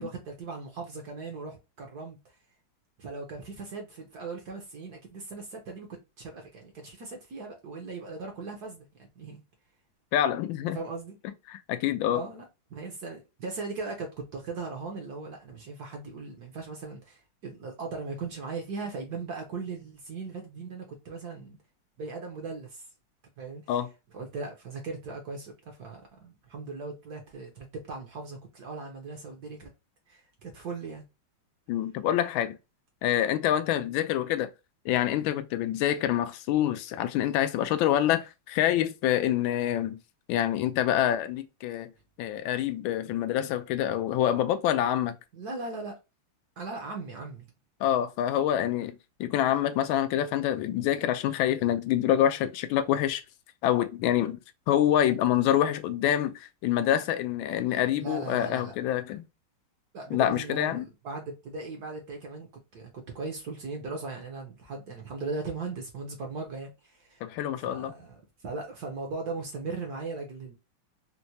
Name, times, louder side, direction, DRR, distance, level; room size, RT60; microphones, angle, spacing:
voice 1, 0.0-2.2 3.0-9.4 10.7-11.1 12.1-12.4 12.7-21.6 22.0-22.9 23.4-23.8 24.1-29.7 30.1-31.0 45.3-45.9 46.6-47.4 58.0-58.7 59.9-67.2 67.6-70.5, right 3 dB, 60° right, 1.1 m, -38 dB
voice 2, 10.1-10.8 11.5-12.2 23.7-23.9 31.7-32.6 33.0-34.5 34.8-40.0 40.3-41.9 42.2-45.2 47.8-53.2 53.6-54.4 54.7-59.2 60.1-60.8 67.2-67.9, left 11 dB, 75° left, 1.3 m, -26 dB
4.4 x 2.1 x 2.7 m
omnidirectional pair, 2.3 m